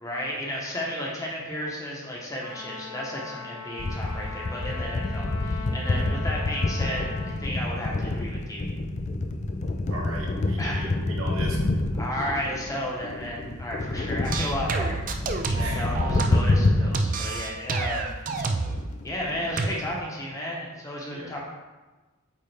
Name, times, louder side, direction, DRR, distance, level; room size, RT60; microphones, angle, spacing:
voice 1, 0.0-8.6 10.6-10.9 12.0-15.0 15.5-18.1 19.0-21.4, equal, 15° left, -3 dB, 0.9 m, -33 dB
Trumpet, 2.4-7.4, left 4 dB, 80° left, 0.6 m, -40 dB
sound 1, 3.8-17.0 17.5-17.6 17.8-18.0 18.4-18.5 18.7-20.0, left 2 dB, 30° left, 0.3 m, -28 dB
voice 2, 9.9-11.7 15.5-16.2 21.1-21.4, right 1 dB, 65° right, -2 dB, 1.2 m, -37 dB
sound 2, 14.2-16.6 16.9-18.8 19.6-19.7, right 3 dB, 35° right, 0.4 m, -28 dB
8.4 x 3.5 x 3.4 m, 1.2 s
head